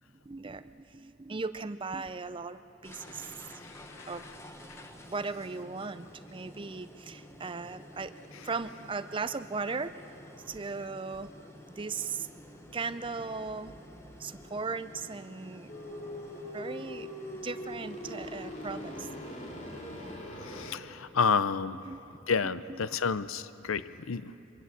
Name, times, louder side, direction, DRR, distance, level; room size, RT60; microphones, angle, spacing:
voice 1, 0.3-3.3 4.1-4.2 5.1-8.1 8.4-10.1 10.5-11.3 11.7-12.3 12.7-13.8 14.2-15.7 16.4-17.1 17.4-19.1 20.7-20.8 21.8-22.0 22.4-23.0 24.1-24.2, right 4 dB, 25° right, 12 dB, 0.5 m, -37 dB
sound 1, 2.8-20.2, left 1 dB, 15° left, 1.2 m, -51 dB
sound 2, 15.7-20.7, equal, 35° left, 2.7 m, -41 dB
voice 2, 20.4-21.8 22.3-24.3, left 5 dB, 80° left, 15 dB, 0.7 m, -30 dB
24.5 x 23.5 x 7.4 m, 2.9 s
head